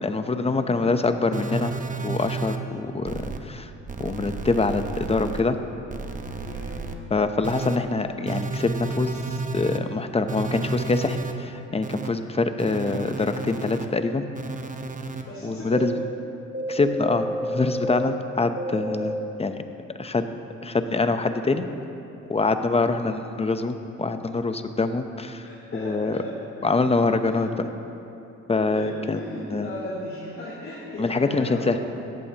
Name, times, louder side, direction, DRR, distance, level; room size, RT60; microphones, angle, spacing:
voice 1, 0.0-1.7 2.0-3.7 4.0-5.6 7.1-14.3 15.4-16.0 16.7-19.1 19.4-19.6 20.0-20.3 20.6-21.7 22.3-25.4 25.7-26.2 26.6-27.5 28.5-29.2 29.5-29.7 31.0-31.8, left 3 dB, 20° left, 8 dB, 0.8 m, -25 dB
sound 1, 1.3-2.6 3.0-3.4 3.9-5.4 5.9-6.9 7.4-7.8 8.3-9.8 10.3-11.3 11.8-12.1 12.6-13.9 14.3-15.2 15.7-16.0 16.5-18.1 18.6-19.2, right 2 dB, 25° right, 1.0 m, -31 dB
voice 2, 6.3-6.9 15.2-15.7 25.4-26.7 27.2-27.5 28.7-31.8, left 1 dB, 45° left, -8 dB, 3.2 m, -36 dB
17.5 x 14.5 x 2.9 m, 2.9 s
cardioid pair, 90°, 30 cm